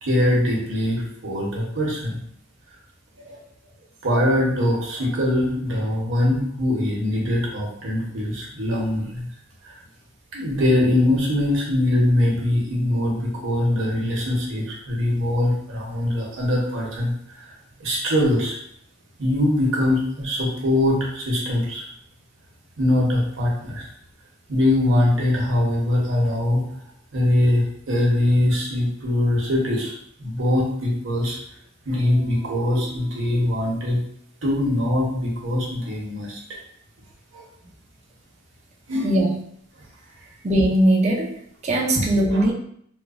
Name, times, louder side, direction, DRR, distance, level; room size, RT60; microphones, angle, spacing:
voice 1, 0.0-2.2 3.2-3.4 4.0-9.3 9.6-9.7 10.3-17.5 17.8-18.6 19.2-21.8 22.8-23.9 24.5-26.7 27.1-31.4 31.8-34.0 34.4-36.4 37.3-37.4 38.9-39.1 41.9-42.0 42.3-42.4, left 1 dB, 70° right, -3 dB, 0.9 m, -22 dB
voice 2, 40.4-41.3 41.6-42.5, right 1 dB, 35° right, 0 dB, 0.4 m, -19 dB
3.1 x 2.2 x 2.4 m, 0.66 s
head